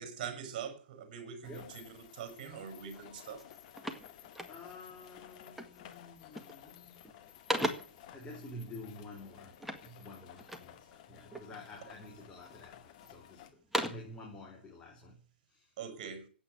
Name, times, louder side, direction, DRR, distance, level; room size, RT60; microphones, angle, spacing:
voice 1, 0.0-1.8 2.1-3.4 15.8-16.3, right 7 dB, 40° right, 5.6 m, -43 dB
sound 1, 1.4-13.5, left 11 dB, 40° left, 2.3 m, -55 dB
voice 2, 1.4-1.8 4.5-7.0 8.1-15.7, left 1 dB, 15° left, 4.2 m, -50 dB
sound 2, 2.9-3.1 3.4-4.9 5.5-5.9 6.2-6.7 7.0-8.1 9.6-10.8 11.3-11.9 12.5-13.1 13.5-14.2, right 1 dB, ahead, 1.8 m, -38 dB
15.5 x 9.3 x 9.0 m
figure-of-eight pair, 115°, 6 cm